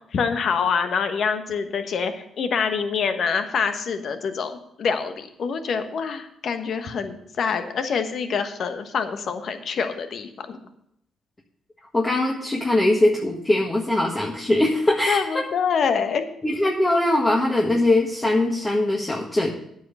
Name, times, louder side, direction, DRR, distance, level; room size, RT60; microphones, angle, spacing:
voice 1, 0.1-10.6 15.1-16.2, left 6 dB, 60° left, 8 dB, 1.2 m, -26 dB
voice 2, 11.9-15.4 16.4-19.5, left 1 dB, 25° left, -1 dB, 1.7 m, -21 dB
9.3 x 5.7 x 8.2 m, 0.74 s
supercardioid pair, 60°, 0 cm